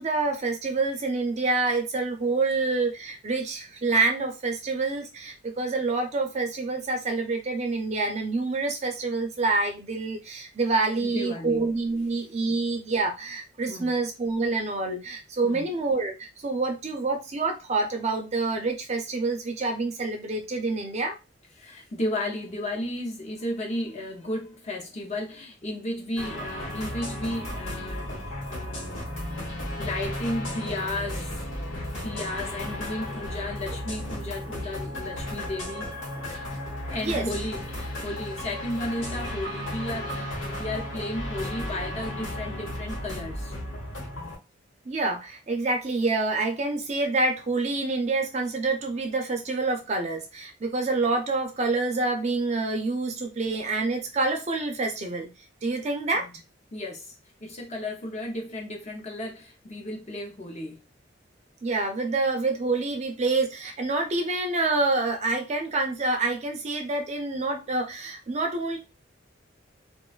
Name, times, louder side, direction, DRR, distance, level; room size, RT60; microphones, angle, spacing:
voice 1, 0.0-21.2 37.0-37.3 44.9-55.3 55.6-56.3 61.6-68.8, right 3 dB, 35° right, 0.4 m, -27 dB
voice 2, 11.0-11.7 12.5-12.6 13.7-13.9 15.4-15.7 21.6-29.0 29.8-31.3 31.9-35.9 36.9-43.5 56.1-56.3 56.7-57.2 57.4-60.8, left 1 dB, 35° left, 0.6 m, -34 dB
sound 1, 26.2-44.4, left 1 dB, 75° left, 1.2 m, -34 dB
2.4 x 2.2 x 2.3 m
head